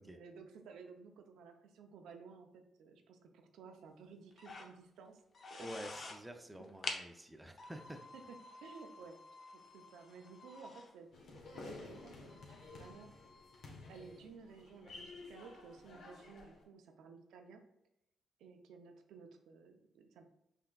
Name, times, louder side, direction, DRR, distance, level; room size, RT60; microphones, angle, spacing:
voice 1, 0.0-5.2 5.5-5.7 5.9-6.0 8.1-8.2 8.6-9.2 9.5-12.3 12.6-13.1 13.9-17.6 18.4-20.3, right 5 dB, 90° right, 5 dB, 0.6 m, -55 dB
sound 1, 4.3-4.7 5.2-6.2 6.6-7.0 7.5-10.9 11.3-11.4 11.9-14.2, left 3 dB, 40° left, 0.6 m, -49 dB
voice 2, 5.6-8.0, equal, 10° right, 5 dB, 0.5 m, -49 dB
sound 2, 11.1-16.6, left 3 dB, 70° left, 1.1 m, -53 dB
5.7 x 3.4 x 2.3 m, 0.84 s
cardioid pair, 100°, 0 cm